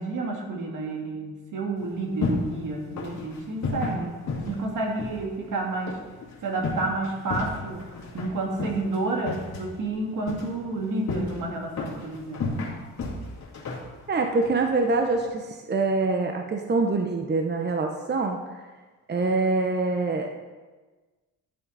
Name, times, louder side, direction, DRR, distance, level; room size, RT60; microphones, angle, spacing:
voice 1, 0.0-6.0 6.4-7.8 8.1-12.5, right 2 dB, 70° right, 0 dB, 2.1 m, -30 dB
sound 1, 1.8-15.2, left 3 dB, 55° left, 2.3 m, -34 dB
voice 2, 14.1-18.4 19.1-20.3, right 3 dB, 30° right, 4 dB, 0.9 m, -25 dB
12.5 x 7.3 x 4.1 m, 1.3 s
cardioid pair, 90°, 33 cm